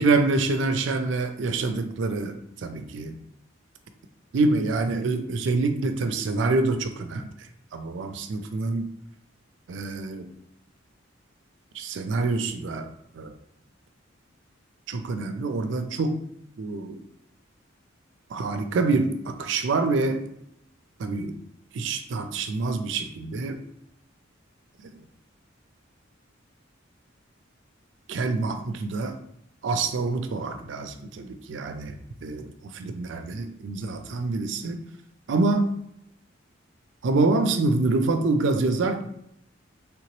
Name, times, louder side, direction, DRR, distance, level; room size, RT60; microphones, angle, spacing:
voice 1, 0.0-3.2 4.3-7.3 7.7-8.9 9.7-10.3 11.7-12.9 13.1-13.3 14.9-16.2 16.6-17.0 18.3-20.2 21.0-21.4 21.7-23.6 28.1-29.2 29.6-34.8 35.3-35.7 37.0-39.0, right 3 dB, 65° right, 8 dB, 0.4 m, -26 dB
3.4 x 2.8 x 3.0 m, 0.75 s
head